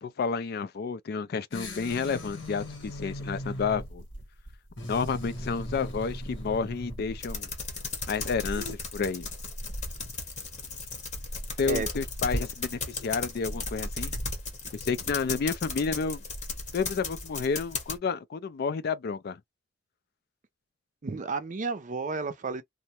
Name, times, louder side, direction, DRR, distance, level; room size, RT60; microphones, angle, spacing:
voice 1, 0.0-4.0 4.8-7.5 8.1-9.3 11.6-14.1 14.7-16.2 16.7-19.4, left 5 dB, 55° left, 0.4 m, -30 dB
sound 1, 1.5-8.7, left 1 dB, 80° left, 1.3 m, -39 dB
sound 2, 7.2-18.0, left 3 dB, 40° left, 0.9 m, -35 dB
voice 2, 21.0-22.6, right 4 dB, 40° right, 0.5 m, -32 dB
2.5 x 2.1 x 2.8 m
head